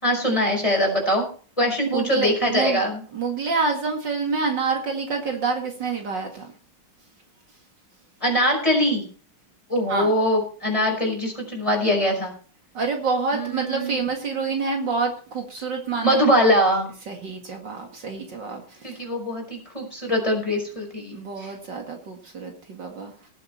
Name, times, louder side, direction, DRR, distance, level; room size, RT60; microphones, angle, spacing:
voice 1, 0.0-1.3 1.6-3.0 8.2-9.0 9.7-12.3 13.3-14.0 16.0-16.9 18.8-21.5, equal, 15° left, 0 dB, 5.4 m, -22 dB
voice 2, 1.9-2.8 3.1-6.5 9.9-10.1 12.7-16.2 17.1-18.6 18.9-19.0 21.1-23.1, right 4 dB, 60° right, 2 dB, 2.6 m, -27 dB
18.5 x 8.1 x 4.3 m, 0.41 s
omnidirectional pair, 2.3 m